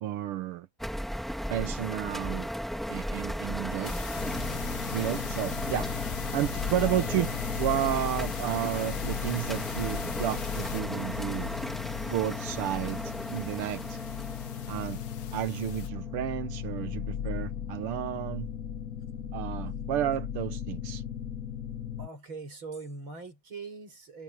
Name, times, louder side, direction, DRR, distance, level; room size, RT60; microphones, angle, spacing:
voice 1, 0.0-0.7 1.5-2.5 2.9-3.9 4.9-5.9 6.3-7.3 7.6-11.5 12.1-14.0 14.7-15.0 15.3-18.5 19.3-21.0, right 12 dB, 85° right, 1.8 m, -32 dB
sound 1, 0.8-16.2, equal, ahead, 2.3 m, -36 dB
sound 2, 3.8-15.9, left 10 dB, 90° left, 2.1 m, -43 dB
sound 3, 4.2-22.1, left 9 dB, 60° left, 0.9 m, -37 dB
voice 2, 22.0-24.2, right 4 dB, 65° right, 7.6 m, -42 dB
omnidirectional pair, 2.4 m